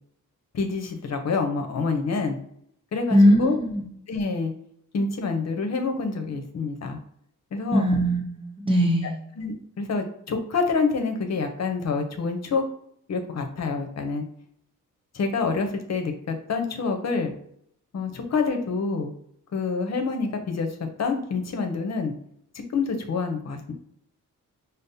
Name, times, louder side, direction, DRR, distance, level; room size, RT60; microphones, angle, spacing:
voice 1, 0.5-2.4 2.9-3.6 4.1-4.5 4.9-7.0 7.5-7.9 9.4-12.6 13.1-14.2 15.1-17.3 17.9-19.1 19.5-22.1 22.7-23.7, left 4 dB, 55° left, 5 dB, 0.7 m, -27 dB
voice 2, 3.1-3.8 7.7-9.1, equal, 15° right, -1 dB, 0.9 m, -20 dB
5.2 x 2.0 x 2.6 m, 0.68 s
wide cardioid pair, 100°, 32 cm